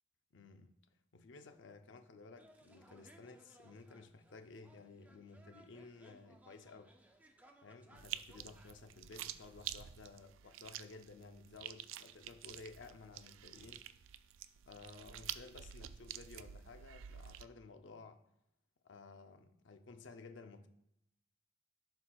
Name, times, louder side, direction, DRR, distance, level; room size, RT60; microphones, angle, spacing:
voice 1, 0.3-0.7 1.1-7.0 7.6-13.9 14.7-18.2 18.8-20.7, left 3 dB, 60° left, 0.6 m, -55 dB
sound 1, 2.4-9.6, right 1 dB, 10° right, 0.5 m, -65 dB
sound 2, 8.0-17.5, right 11 dB, 75° right, 0.3 m, -49 dB
11.5 x 4.3 x 2.3 m
head